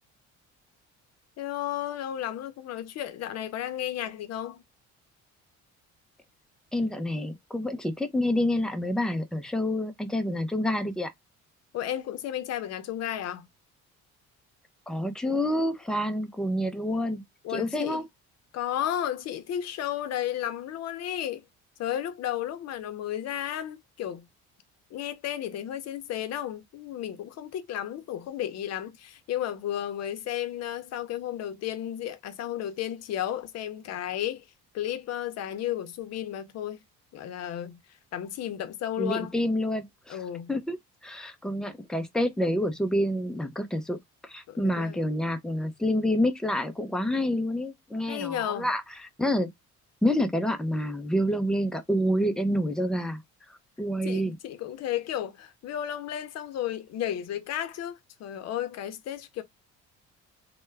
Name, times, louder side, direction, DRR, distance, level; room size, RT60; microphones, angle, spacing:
voice 1, 1.4-4.6 11.7-13.5 17.4-18.0 18.5-21.4 21.8-24.2 24.9-34.5 34.7-36.8 37.1-37.8 38.1-39.3 40.1-40.5 44.5-45.0 48.1-48.7 54.0-59.4, left 11 dB, 60° left, 0.7 m, -33 dB
voice 2, 6.7-11.1 14.9-17.2 17.5-18.0 39.0-40.2 40.5-40.8 41.0-44.0 44.2-48.8 49.2-49.5 50.0-53.2 53.5-54.4, left 1 dB, ahead, 0.5 m, -28 dB
3.3 x 2.2 x 3.2 m
cardioid pair, 120°, 29 cm